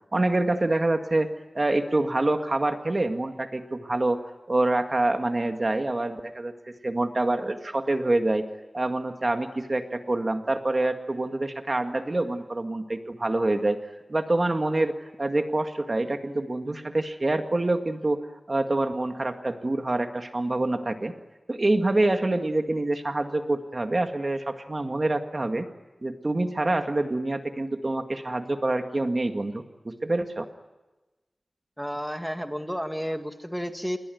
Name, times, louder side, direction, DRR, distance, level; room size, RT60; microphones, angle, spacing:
voice 1, 0.1-4.2 4.5-6.5 6.8-8.4 8.7-13.8 14.1-18.2 18.5-21.1 21.5-25.7 26.0-30.5, right 2 dB, 40° right, 6 dB, 1.9 m, -26 dB
voice 2, 31.8-34.0, equal, ahead, 6 dB, 1.9 m, -31 dB
28.0 x 22.5 x 9.3 m, 1.1 s
wide cardioid pair, 85°, 0 cm